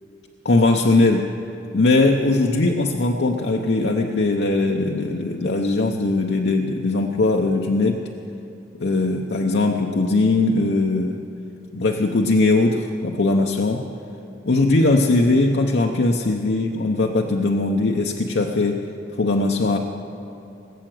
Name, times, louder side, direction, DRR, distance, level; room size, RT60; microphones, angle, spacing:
voice 1, 0.4-1.3 1.7-8.0 8.8-11.3 11.7-13.8 14.4-18.8 19.2-19.8, left 2 dB, 70° left, 2 dB, 0.7 m, -20 dB
19.5 x 7.7 x 7.7 m, 2.9 s
head